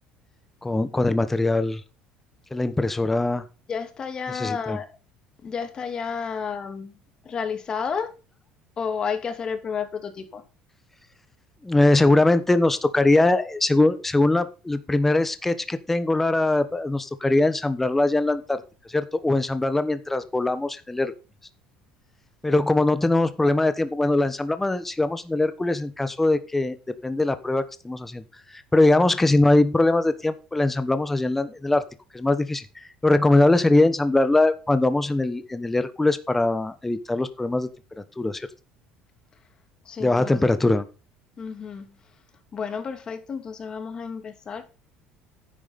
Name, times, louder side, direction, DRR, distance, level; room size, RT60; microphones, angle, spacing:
voice 1, 0.6-1.8 2.5-3.4 4.3-4.8 11.6-18.6 18.9-21.1 22.4-26.7 27.0-28.2 28.5-31.8 32.1-32.6 33.0-37.7 38.0-38.5 40.0-40.8, left 2 dB, 10° left, 1.1 m, -21 dB
voice 2, 3.7-4.9 5.4-6.9 7.2-8.1 8.8-10.4 39.8-40.5 41.4-41.9 42.5-44.6, left 6 dB, 30° left, 2.5 m, -31 dB
10.0 x 9.2 x 4.2 m
cardioid pair, 120°, 2 cm